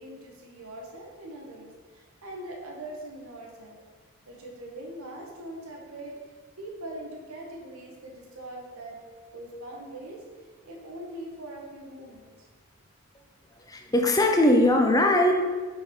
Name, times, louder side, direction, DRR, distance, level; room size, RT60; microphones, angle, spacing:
voice 1, 0.0-3.8 4.3-6.1 6.6-9.0 9.3-12.5, right 1 dB, 80° right, -1 dB, 1.6 m, -42 dB
voice 2, 13.7-15.3, left 1 dB, 15° left, 3 dB, 0.7 m, -20 dB
6.1 x 5.5 x 4.8 m, 1.4 s
head